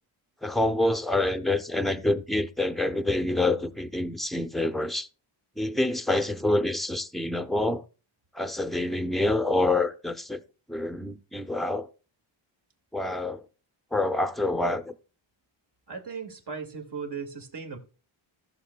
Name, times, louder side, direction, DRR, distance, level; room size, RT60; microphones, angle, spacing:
voice 1, 0.4-5.1 5.6-7.8 8.3-10.4 10.7-11.9 12.9-13.4 13.9-14.9, left 2 dB, ahead, 0.6 m, -27 dB
voice 2, 15.9-17.8, right 5 dB, 55° right, 2.1 m, -37 dB
15.0 x 6.7 x 2.2 m
wide cardioid pair, 110°, 49 cm